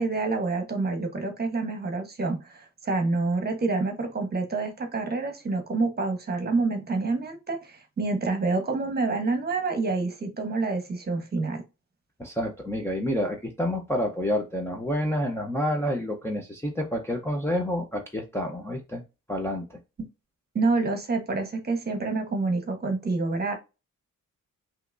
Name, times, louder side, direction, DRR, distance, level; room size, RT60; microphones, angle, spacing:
voice 1, 0.0-11.6 20.5-23.5, right 3 dB, 30° right, 5 dB, 1.1 m, -27 dB
voice 2, 12.2-19.0 19.3-19.8, equal, 10° left, -1 dB, 0.7 m, -28 dB
5.6 x 3.0 x 2.5 m, 0.27 s
wide cardioid pair, 175°, 32 cm